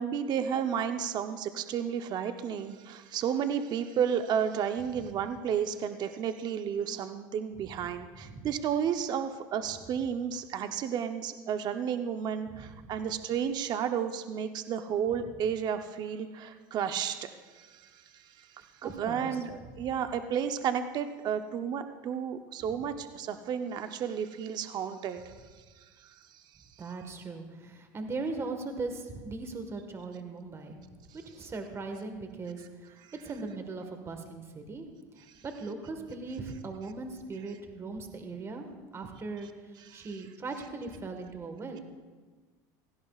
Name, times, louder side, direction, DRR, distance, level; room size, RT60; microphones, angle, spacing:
voice 1, 0.0-25.3 25.8-26.2 33.0-33.1 39.9-40.2, right 8 dB, 45° right, 8 dB, 0.7 m, -32 dB
voice 2, 12.5-12.8 18.8-19.4 19.8-19.9 26.8-30.8 31.3-34.9 35.2-38.7 38.9-39.5 39.9-41.8, right 3 dB, 25° right, 5 dB, 1.5 m, -39 dB
17.0 x 15.5 x 2.4 m, 1.4 s
supercardioid pair, 105°, 10 cm